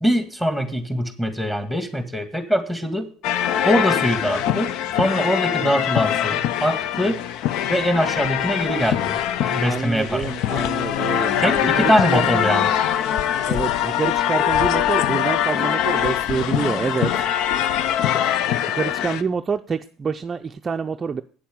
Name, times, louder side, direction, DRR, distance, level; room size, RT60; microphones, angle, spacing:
voice 1, 0.0-3.1 3.6-7.2 7.7-10.3 11.4-12.7, equal, 5° left, 8 dB, 1.9 m, -22 dB
sound 1, 3.2-19.2, left 10 dB, 70° left, 0.6 m, -23 dB
voice 2, 9.6-12.5 13.5-17.3 18.7-21.2, right 5 dB, 30° right, 7 dB, 0.5 m, -27 dB
8.9 x 7.0 x 7.7 m, 0.43 s
supercardioid pair, 100°, 0 cm